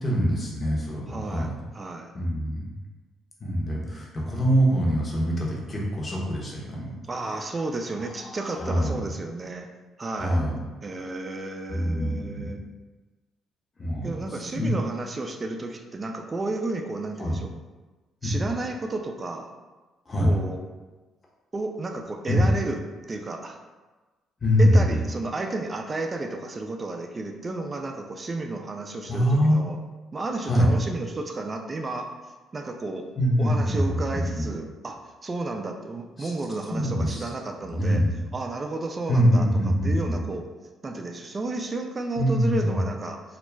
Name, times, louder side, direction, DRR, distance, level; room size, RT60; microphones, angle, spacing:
voice 1, 0.0-1.6 2.1-2.7 3.4-6.9 8.0-9.0 10.2-10.6 11.7-12.5 13.8-14.8 17.2-17.4 18.2-18.3 20.1-20.3 22.3-22.6 24.4-25.0 29.1-29.7 30.4-30.7 33.2-34.5 36.2-36.3 36.7-37.2 37.7-38.2 39.1-40.2 42.2-42.8, equal, 35° left, -3 dB, 0.8 m, -24 dB
voice 2, 1.1-2.1 7.1-9.7 10.0-10.4 10.8-12.6 14.0-17.5 18.2-19.5 20.2-20.6 21.5-22.8 23.1-23.6 24.6-29.8 30.1-32.1 32.5-33.1 33.4-38.0 38.3-39.5 39.8-40.5 40.8-43.2, right 2 dB, 30° right, 4 dB, 0.3 m, -32 dB
2.3 x 2.0 x 3.2 m, 1.2 s
supercardioid pair, 75°, 0 cm